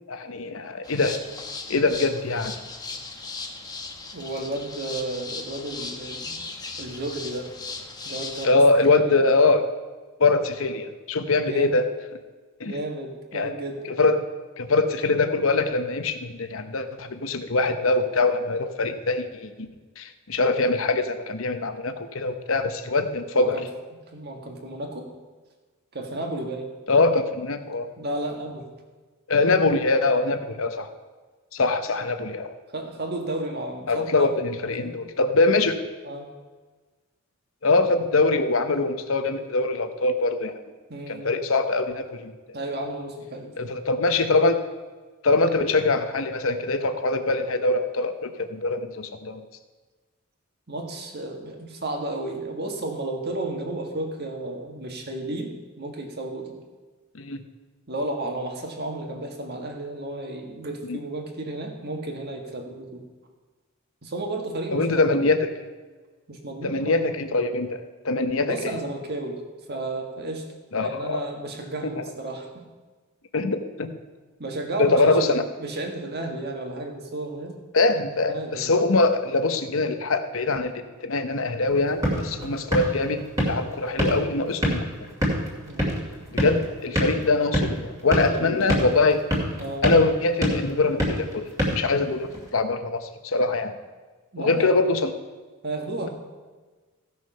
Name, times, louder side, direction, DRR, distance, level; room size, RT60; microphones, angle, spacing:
voice 1, 0.1-1.2 1.7-2.5 8.4-9.6 10.2-11.8 12.6-12.7 13.3-13.5 14.0-14.3 14.6-19.7 20.0-23.6 26.9-27.9 29.3-30.9 31.5-32.5 33.9-35.8 37.6-40.6 41.1-42.3 43.6-44.6 45.2-49.4 57.1-57.4 60.9-61.0 64.7-65.5 66.6-68.7 70.7-71.3 73.3-73.9 74.8-75.4 77.7-84.8 86.3-89.2 89.8-93.7 94.4-95.1, left 3 dB, 70° left, 8 dB, 0.9 m, -23 dB
sound 1, 0.8-8.5, left 4 dB, 20° left, 0.9 m, -37 dB
voice 2, 4.1-6.4 6.8-7.5 8.0-8.6 8.9-9.3 11.4-11.8 12.6-13.8 23.3-23.7 24.1-25.1 25.9-26.7 28.0-28.7 30.1-30.3 32.7-34.3 34.8-35.0 36.0-36.3 40.9-41.3 42.5-43.7 50.7-56.6 57.9-63.0 64.0-65.4 66.3-67.1 68.5-69.4 69.7-70.5 70.8-72.6 74.4-77.6 78.3-78.7 82.3-82.6 85.7-86.1 88.3-88.9 89.6-89.9 94.3-94.8 95.6-96.1, right 2 dB, 50° right, 3 dB, 1.7 m, -33 dB
sound 2, 81.7-92.5, equal, 15° right, 2.5 m, -28 dB
15.5 x 6.4 x 5.6 m, 1.3 s
head